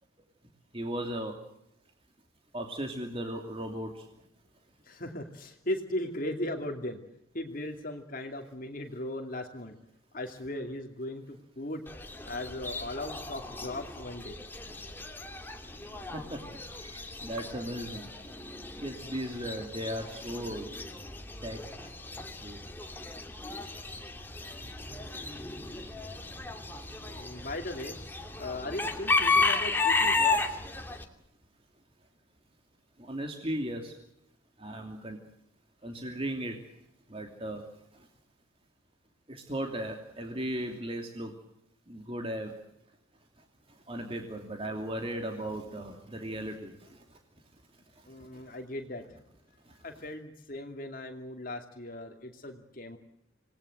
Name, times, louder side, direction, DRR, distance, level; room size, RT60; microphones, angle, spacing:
voice 1, 0.7-1.3 2.5-3.9 16.1-16.2 17.2-18.1 18.8-20.7 21.4-21.6 22.4-22.6 33.1-33.9 34.6-35.2 35.8-36.5 37.1-37.6 39.5-41.3 41.9-42.5 43.9-46.7, right 1 dB, 25° right, 3 dB, 2.8 m, -36 dB
voice 2, 4.8-7.0 7.3-9.7 10.1-11.8 12.3-14.4 26.9-28.0 28.4-30.6 48.1-49.0 49.8-53.0, left 1 dB, 45° left, 3 dB, 2.6 m, -38 dB
Chicken rooster / Bird, 11.9-31.0, left 3 dB, 10° left, 2.5 m, -33 dB
27.5 x 19.5 x 7.9 m, 0.82 s
head